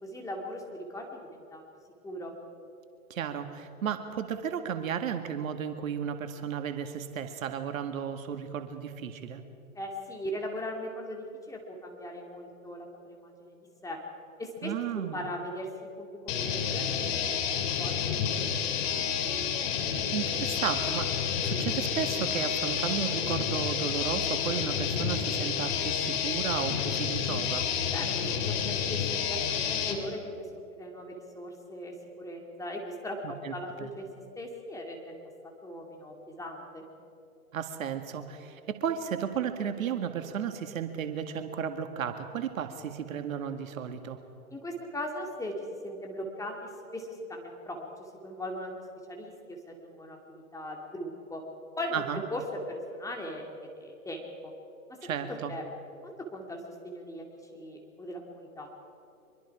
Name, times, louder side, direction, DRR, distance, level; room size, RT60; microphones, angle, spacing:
voice 1, 0.0-1.6 2.0-2.3 9.7-13.6 13.8-14.0 14.4-15.7 16.0-17.2 17.8-18.4 19.0-19.3 27.9-34.1 34.4-35.2 35.4-36.8 44.5-48.7 49.1-51.4 51.8-52.4 52.7-54.5 55.2-55.6 56.0-58.7, left 1 dB, 5° left, 1 dB, 2.6 m, -39 dB
voice 2, 3.1-9.4 14.6-15.2 20.1-27.7 33.2-33.9 37.5-44.2 51.9-52.2 55.0-55.5, right 8 dB, 65° right, 7 dB, 1.9 m, -34 dB
sound 1, 16.3-30.0, left 7 dB, 45° left, 2.7 m, -30 dB
24.5 x 23.0 x 4.9 m, 2.6 s
hypercardioid pair, 125°, 44 cm